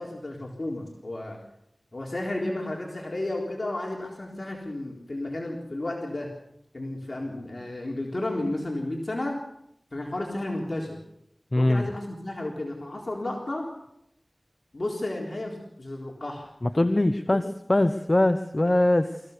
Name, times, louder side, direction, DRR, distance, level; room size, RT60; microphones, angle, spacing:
voice 1, 0.0-1.4 1.9-6.3 6.7-9.4 9.9-11.0 11.6-13.7 14.7-16.5 17.3-17.4, left 1 dB, 65° left, -1 dB, 3.9 m, -32 dB
voice 2, 11.5-11.9 16.6-17.4 17.7-19.2, left 1 dB, 40° left, 10 dB, 1.0 m, -22 dB
25.0 x 15.5 x 6.8 m, 0.79 s
wide cardioid pair, 40°, 0 cm